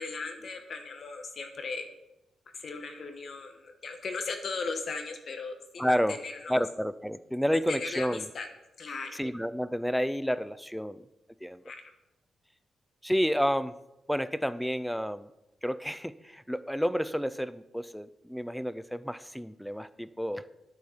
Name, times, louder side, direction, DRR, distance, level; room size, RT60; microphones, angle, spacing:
voice 1, 0.0-1.8 2.5-6.5 7.5-8.1 8.3-8.5 8.8-9.2 11.7-11.8, left 4 dB, 45° left, 5 dB, 1.3 m, -37 dB
voice 2, 5.8-6.2 6.5-8.3 9.1-11.1 11.4-11.6 13.0-13.7 14.1-15.3 15.6-20.5, equal, ahead, 15 dB, 0.5 m, -30 dB
10.5 x 8.7 x 5.8 m, 0.92 s
wide cardioid pair, 155°, 0 cm